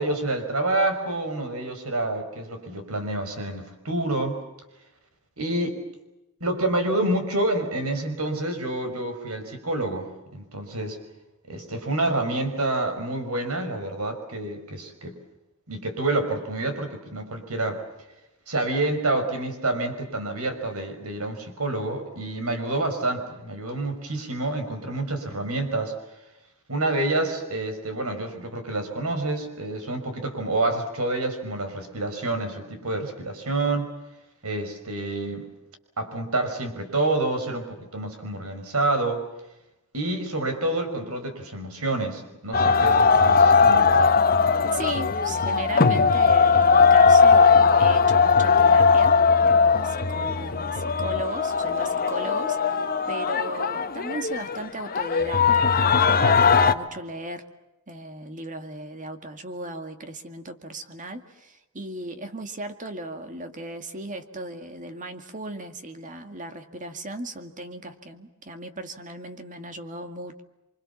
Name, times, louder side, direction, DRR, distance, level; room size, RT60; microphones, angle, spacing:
voice 1, 0.0-4.4 5.4-5.8 6.4-11.0 11.5-15.2 15.7-17.8 18.5-25.9 26.7-33.9 34.4-35.5 36.0-39.2 39.9-44.1, right 2 dB, 85° right, 7 dB, 5.7 m, -28 dB
sound 1, 42.5-56.7, left 5 dB, 45° left, 1.2 m, -19 dB
voice 2, 44.7-49.2 49.4-57.4 57.9-70.4, right 2 dB, 35° right, 7 dB, 2.2 m, -37 dB
29.0 x 25.0 x 7.3 m, 0.95 s
head